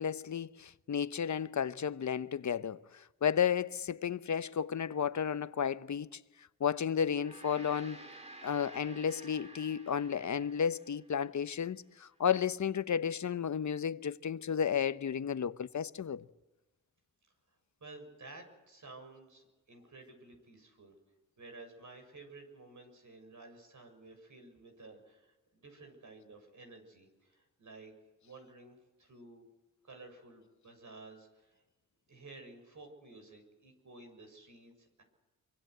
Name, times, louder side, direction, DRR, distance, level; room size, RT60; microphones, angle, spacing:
voice 1, 0.0-2.8 3.2-6.1 6.6-8.0 8.4-16.2, left 7 dB, 60° left, 0.9 m, -33 dB
Gong, 7.0-11.6, right 1 dB, 20° right, 2.4 m, -53 dB
voice 2, 17.8-20.9 21.4-27.9 28.2-29.5 29.8-31.6 32.1-35.0, right 3 dB, 65° right, 7.0 m, -53 dB
25.5 x 24.0 x 8.0 m
cardioid pair, 75°, 32 cm